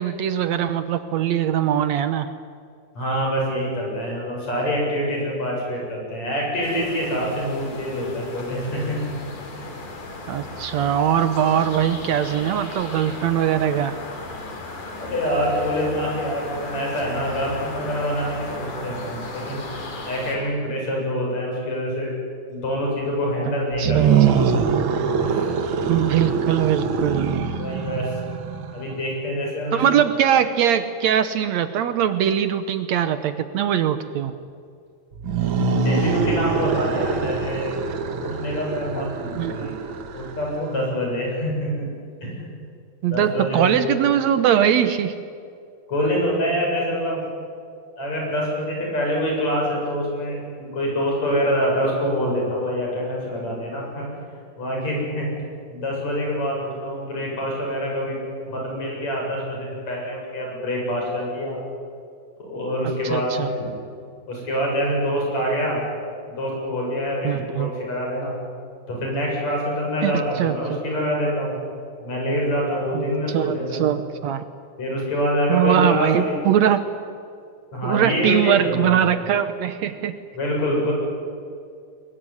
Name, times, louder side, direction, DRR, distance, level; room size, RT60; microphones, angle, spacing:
voice 1, 0.0-2.3 10.3-14.0 23.5-24.4 24.6-24.9 25.9-27.5 29.7-34.3 39.3-39.8 43.0-45.1 63.1-63.5 67.2-67.7 70.0-70.8 72.9-73.0 73.3-74.4 75.5-76.8 77.8-80.2, right 10 dB, 70° right, 11 dB, 2.0 m, -21 dB
voice 2, 3.0-9.1 9.6-9.7 15.0-19.6 20.1-22.1 22.5-24.4 25.2-25.5 27.5-28.2 28.7-29.8 35.7-37.8 38.2-39.8 40.1-41.9 42.2-42.5 43.1-43.9 45.9-47.2 48.0-54.2 54.6-55.3 55.7-61.6 62.4-63.7 64.3-65.8 66.4-68.4 68.9-71.6 72.0-73.8 74.8-76.4 77.7-79.1 80.3-80.9, equal, 60° left, -2 dB, 8.9 m, -25 dB
sound 1, 6.6-20.4, left 2 dB, 80° left, 4.9 m, -36 dB
sound 2, 23.7-28.9 35.1-40.8, right 6 dB, 50° right, 1.7 m, -23 dB
22.5 x 21.5 x 9.8 m, 2.4 s
omnidirectional pair, 3.5 m